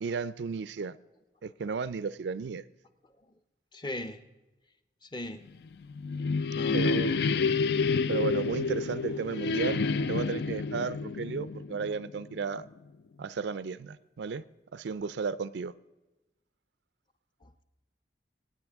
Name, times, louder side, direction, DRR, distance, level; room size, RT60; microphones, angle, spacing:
voice 1, 0.0-1.0 1.4-2.6 6.7-7.2 8.1-12.6 13.2-14.4 14.7-15.7, right 5 dB, 80° right, 17 dB, 0.4 m, -34 dB
voice 2, 3.7-4.2 5.0-5.4 6.5-7.5 17.4-17.5, left 1 dB, 25° left, 9 dB, 0.7 m, -40 dB
sound 1, 5.7-12.4, left 4 dB, 65° left, 0.4 m, -29 dB
24.5 x 9.0 x 3.5 m, 1.1 s
head